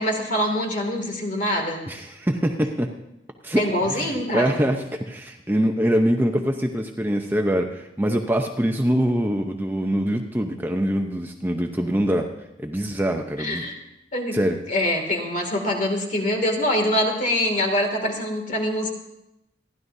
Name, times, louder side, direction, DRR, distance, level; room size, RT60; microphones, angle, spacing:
voice 1, 0.0-1.8 3.6-4.6 13.4-13.7 14.1-14.4 14.7-18.9, left 1 dB, 45° left, 2 dB, 2.4 m, -24 dB
voice 2, 1.9-2.9 3.4-12.3 12.6-13.6 14.3-14.6, equal, 10° right, 3 dB, 0.7 m, -24 dB
28.0 x 11.5 x 2.7 m, 0.88 s
head